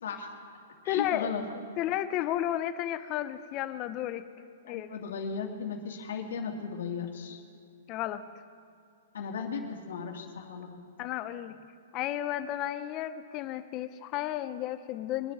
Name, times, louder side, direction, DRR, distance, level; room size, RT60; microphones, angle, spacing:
voice 1, 0.0-0.3 0.8-1.4 4.7-7.4 9.1-10.8, left 6 dB, 75° left, 1 dB, 2.4 m, -36 dB
voice 2, 0.9-1.3 1.8-4.2 4.6-4.9 7.9-8.2 11.0-11.6 11.9-15.3, left 12 dB, 25° left, 11 dB, 0.6 m, -32 dB
23.5 x 10.5 x 3.6 m, 2.3 s
hypercardioid pair, 170°, 0 cm